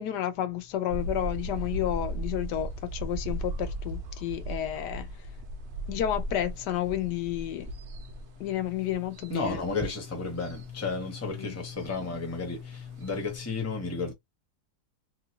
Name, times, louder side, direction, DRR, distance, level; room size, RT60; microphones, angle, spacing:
voice 1, 0.0-5.1 5.9-7.7 8.4-9.6 11.4-11.6, left 11 dB, 85° left, 1.2 m, -31 dB
sound 1, 0.9-13.4, right 1 dB, 80° right, 0.5 m, -37 dB
voice 2, 9.3-12.6 13.0-14.1, left 3 dB, 15° left, 0.7 m, -32 dB
3.1 x 2.4 x 2.9 m
omnidirectional pair, 1.8 m